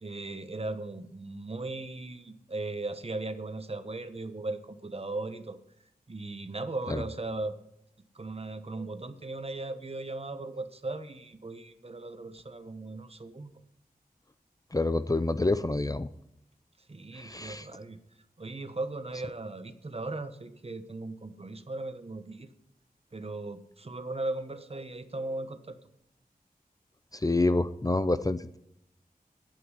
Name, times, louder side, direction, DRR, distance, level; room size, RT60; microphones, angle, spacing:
voice 1, 0.0-5.6 6.1-7.5 8.1-13.5 16.9-18.0 18.4-22.5 23.1-25.8, right 2 dB, 40° right, 10 dB, 1.1 m, -37 dB
voice 2, 14.7-16.1 17.1-17.6 27.2-28.6, left 2 dB, 25° left, 13 dB, 0.6 m, -27 dB
9.2 x 8.6 x 9.7 m, 0.79 s
wide cardioid pair, 70°, 16 cm